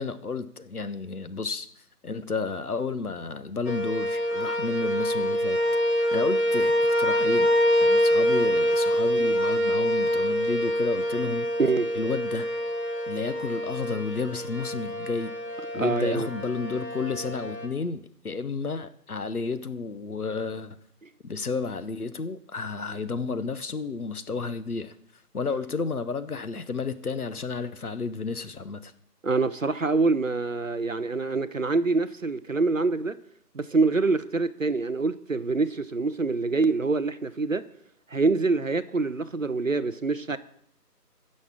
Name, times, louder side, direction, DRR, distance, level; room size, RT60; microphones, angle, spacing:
voice 1, 0.0-1.7 2.0-5.6 5.9-11.5 11.9-12.5 13.1-15.3 15.7-20.8 21.2-28.9, left 4 dB, 65° left, 0.9 m, -32 dB
sound 1, 3.6-17.7, equal, 90° left, 2.1 m, -25 dB
voice 2, 15.8-16.3 29.2-33.2 33.5-37.6 38.1-40.4, right 3 dB, 55° right, 0.6 m, -25 dB
9.4 x 6.5 x 7.5 m
figure-of-eight pair, 165°, 49 cm